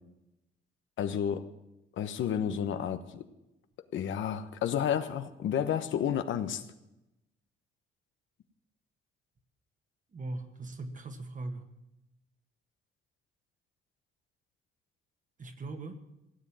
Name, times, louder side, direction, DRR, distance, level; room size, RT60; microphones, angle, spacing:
voice 1, 1.0-1.4 2.0-3.3 3.9-6.6, left 9 dB, 75° left, 10 dB, 1.2 m, -31 dB
voice 2, 10.1-11.7 15.4-16.0, right 2 dB, 40° right, 7 dB, 1.9 m, -40 dB
16.5 x 7.7 x 8.9 m, 0.91 s
cardioid pair, 90°, 20 cm